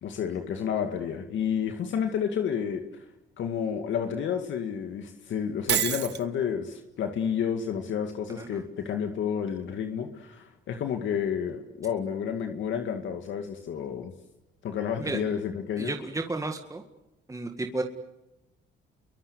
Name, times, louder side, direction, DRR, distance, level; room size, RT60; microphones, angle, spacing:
voice 1, 0.0-3.0 3.4-14.1 14.6-15.9, left 8 dB, 75° left, 5 dB, 2.2 m, -30 dB
Shatter, 5.7-6.2, right 10 dB, 60° right, 1.0 m, -26 dB
voice 2, 15.8-16.8 17.3-17.8, right 2 dB, 15° right, 4 dB, 2.0 m, -32 dB
29.5 x 23.5 x 8.2 m, 0.98 s
cardioid pair, 90°, 20 cm